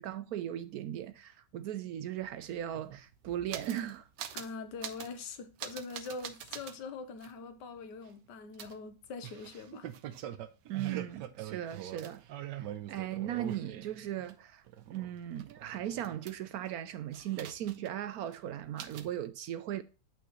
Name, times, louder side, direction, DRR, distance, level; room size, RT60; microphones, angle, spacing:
voice 1, 0.0-4.1 10.6-19.8, right 11 dB, 70° right, 0.9 m, -38 dB
sound 1, 2.2-2.3 2.5-3.9 4.2-4.5 4.8-5.2 5.6-6.8 7.2-7.3 8.6-14.3 14.7-16.7 17.1-18.0 18.3-18.4 18.8-19.1, right 11 dB, 85° right, 1.4 m, -43 dB
voice 2, 4.3-9.9, left 4 dB, 80° left, 1.6 m, -43 dB
8.6 x 5.6 x 3.1 m
omnidirectional pair, 1.9 m